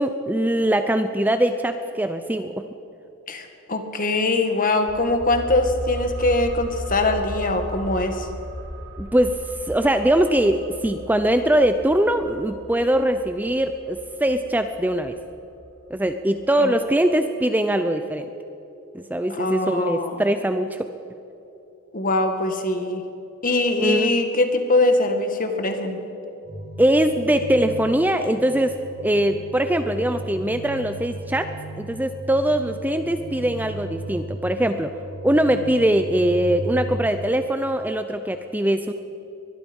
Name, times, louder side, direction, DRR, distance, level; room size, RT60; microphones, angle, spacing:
voice 1, 0.0-2.6 9.0-15.2 15.9-18.2 18.9-20.9 23.8-24.2 26.8-28.8 29.0-34.9 35.2-38.9, right 1 dB, 10° right, 8 dB, 0.6 m, -22 dB
voice 2, 3.3-8.3 16.6-16.7 19.3-20.2 21.9-23.0 23.4-26.0, left 2 dB, 40° left, 6 dB, 2.0 m, -22 dB
sound 1, 4.9-16.2 16.5-16.6, right 1 dB, 55° right, 2.6 m, -36 dB
sound 2, 26.4-37.0, right 1 dB, 35° right, 5.8 m, -36 dB
23.0 x 21.0 x 5.5 m, 2.9 s
head